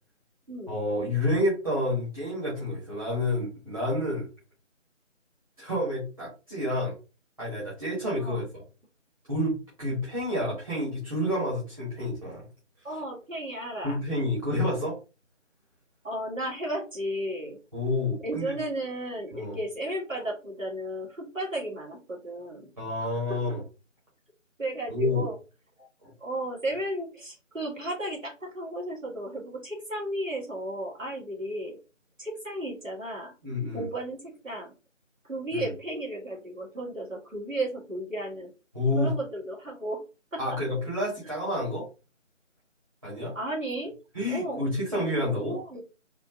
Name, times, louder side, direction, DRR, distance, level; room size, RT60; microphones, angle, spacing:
voice 1, 0.7-4.3 5.6-7.0 7.4-8.6 9.3-12.4 13.8-15.0 17.7-18.5 19.3-19.6 22.8-23.6 24.9-25.2 26.0-26.1 33.4-33.9 35.5-35.6 38.7-39.1 40.4-41.9 43.0-43.3 44.1-45.6, left 1 dB, 30° right, -7 dB, 1.4 m, -29 dB
voice 2, 12.8-14.0 16.0-17.6 18.2-22.7 23.3-23.4 24.6-25.4 25.8-25.9 26.2-31.8 32.2-33.3 33.7-34.7 35.2-38.5 38.9-40.0 40.3-40.4 43.3-43.9 44.3-45.8, right 1 dB, 85° right, -1 dB, 1.9 m, -34 dB
4.2 x 2.6 x 2.9 m, 0.30 s
figure-of-eight pair, 165°, 38 cm